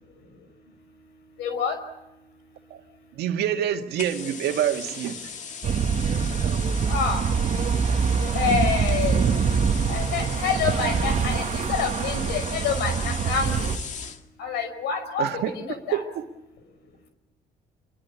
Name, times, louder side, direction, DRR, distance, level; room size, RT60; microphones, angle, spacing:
voice 1, 1.4-1.8 6.9-7.2 8.2-9.2 9.9-13.7 14.4-15.3 15.5-16.0, left 6 dB, 85° left, 9 dB, 5.3 m, -27 dB
voice 2, 3.2-5.3 15.2-16.3, right 10 dB, 75° right, 4 dB, 2.0 m, -27 dB
sound 1, 4.0-14.2, left 6 dB, 45° left, 2.2 m, -38 dB
sound 2, 5.6-13.8, right 6 dB, 45° right, 1.6 m, -24 dB
27.0 x 22.0 x 8.3 m, 0.96 s
cardioid pair, 110°, 17 cm